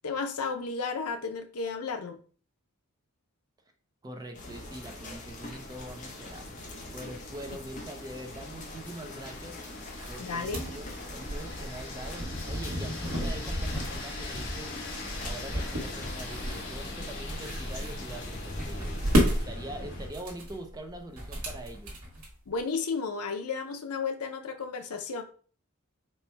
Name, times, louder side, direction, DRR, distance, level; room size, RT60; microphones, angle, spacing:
voice 1, 0.0-2.2 10.2-10.6 22.5-25.2, left 4 dB, 85° left, 7 dB, 0.6 m, -33 dB
voice 2, 4.0-6.5 6.9-9.6 10.1-14.7 15.0-21.9, right 1 dB, 15° right, 4 dB, 0.5 m, -43 dB
sound 1, 4.3-19.4, left 2 dB, 35° left, 0.8 m, -44 dB
sound 2, 5.5-20.1, left 2 dB, 55° left, 1.2 m, -42 dB
sound 3, 9.8-22.6, equal, 75° right, 1.3 m, -33 dB
4.3 x 2.2 x 4.4 m, 0.41 s
head